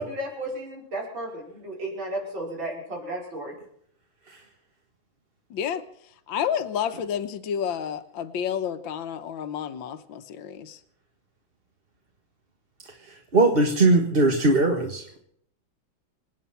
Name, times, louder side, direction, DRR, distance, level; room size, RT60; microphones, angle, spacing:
voice 1, 0.0-3.5, right 1 dB, 70° right, -1 dB, 6.0 m, -33 dB
voice 2, 5.5-5.8 6.3-10.8, left 8 dB, 75° left, 9 dB, 1.8 m, -30 dB
voice 3, 12.8-15.2, right 2 dB, 30° right, 2 dB, 1.7 m, -21 dB
26.5 x 9.1 x 5.7 m, 0.68 s
omnidirectional pair, 2.2 m